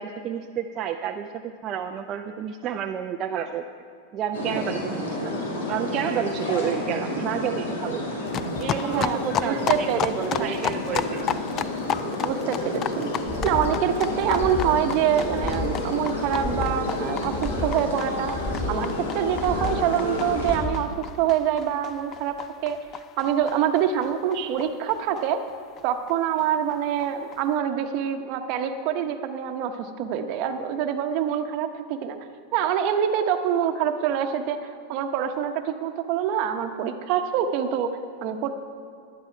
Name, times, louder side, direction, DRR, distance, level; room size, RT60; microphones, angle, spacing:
voice 1, 0.0-3.6 4.1-5.3 5.7-8.1 8.6-11.2, right 9 dB, 40° right, 3 dB, 0.5 m, -30 dB
sound 1, 4.3-20.6, left 1 dB, 85° left, 2.5 m, -30 dB
sound 2, 8.3-25.5 25.8-25.9 26.1-26.2 26.4-26.5 26.7-27.4, left 9 dB, 35° left, 0.3 m, -34 dB
voice 2, 9.4-10.5 12.2-13.1 13.4-22.3 22.6-22.8 23.2-25.4 25.8-32.2 32.5-38.5, right 9 dB, 55° right, 7 dB, 1.0 m, -25 dB
sound 3, 13.2-13.7 14.1-14.7 15.2-15.8 16.2-16.8 17.2-17.8 18.2-18.8 19.2-19.8 20.2-20.8, left 2 dB, 5° left, 0.7 m, -32 dB
11.5 x 11.5 x 4.6 m, 2.4 s
hypercardioid pair, 120°, 0 cm